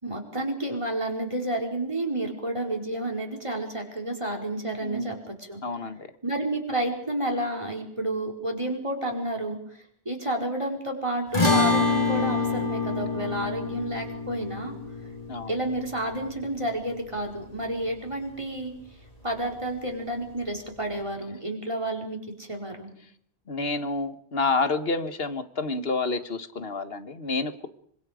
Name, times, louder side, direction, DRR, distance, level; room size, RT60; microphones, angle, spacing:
voice 1, 0.0-5.6 6.2-14.7 15.5-18.7 19.2-22.9, right 1 dB, 30° right, 1 dB, 4.8 m, -30 dB
voice 2, 4.8-5.2 5.6-6.1 15.3-15.5 23.5-27.7, left 3 dB, 65° left, 10 dB, 1.8 m, -29 dB
sound 1, 11.3-17.9, left 3 dB, 35° left, 4.7 m, -27 dB
26.0 x 25.0 x 5.2 m, 0.64 s
omnidirectional pair, 1.1 m